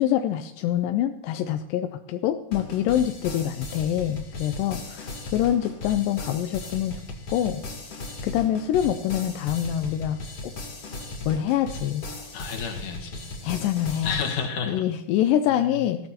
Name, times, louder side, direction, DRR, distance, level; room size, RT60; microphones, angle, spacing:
voice 1, 0.0-7.0 7.3-7.8 8.2-10.5 11.3-12.0 13.4-14.2 14.7-16.1, left 11 dB, 85° left, 7 dB, 2.3 m, -25 dB
sound 1, 2.5-14.2, left 2 dB, 45° left, 3.5 m, -37 dB
voice 2, 12.3-13.3 14.0-14.9 15.5-15.7, left 6 dB, 70° left, 2 dB, 3.0 m, -31 dB
20.0 x 14.0 x 2.9 m, 0.77 s
omnidirectional pair, 3.9 m